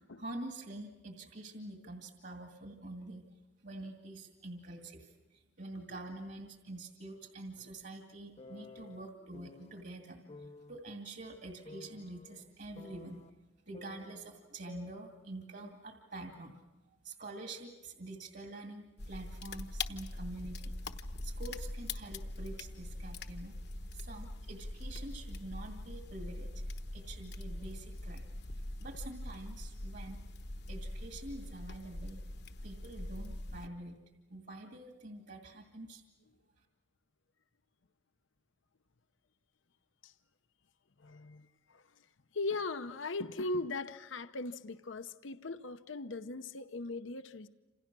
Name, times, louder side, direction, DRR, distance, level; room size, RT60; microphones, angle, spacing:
voice 1, 0.2-3.2 3.6-13.2 13.7-16.5 17.0-20.7 21.2-23.6 23.9-26.5 26.9-28.2 28.8-30.2 30.7-32.2 32.6-34.0 34.3-36.0, right 2 dB, 55° right, 2.3 m, -46 dB
sound 1, 8.4-9.8 10.3-10.8 11.7-13.3 13.7-15.3 15.6-15.7, left 2 dB, 35° left, 1.0 m, -53 dB
sound 2, 19.0-33.7, left 2 dB, 60° left, 1.2 m, -42 dB
voice 2, 41.0-41.8 42.3-47.5, left 3 dB, 85° left, 0.9 m, -39 dB
29.0 x 27.5 x 6.1 m
head